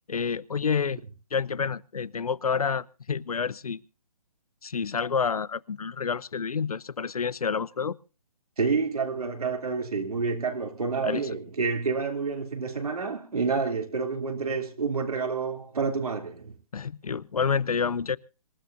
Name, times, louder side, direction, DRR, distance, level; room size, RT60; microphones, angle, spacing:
voice 1, 0.1-1.0 1.3-3.8 4.6-8.0 11.0-11.2 16.7-18.2, left 6 dB, 85° left, 0.7 m, -28 dB
voice 2, 8.6-16.5, right 4 dB, 80° right, 3.1 m, -29 dB
26.0 x 13.5 x 2.6 m
hypercardioid pair, 140°, 19 cm